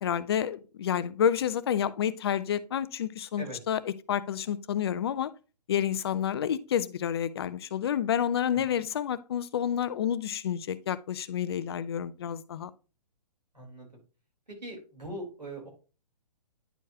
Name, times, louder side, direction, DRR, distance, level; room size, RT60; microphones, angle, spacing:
voice 1, 0.0-5.3 5.7-12.7, left 9 dB, 40° left, 0.5 m, -29 dB
voice 2, 13.5-14.0 14.6-15.7, right 1 dB, 85° right, 3.9 m, -41 dB
10.0 x 4.5 x 2.8 m
figure-of-eight pair, 125°, 21 cm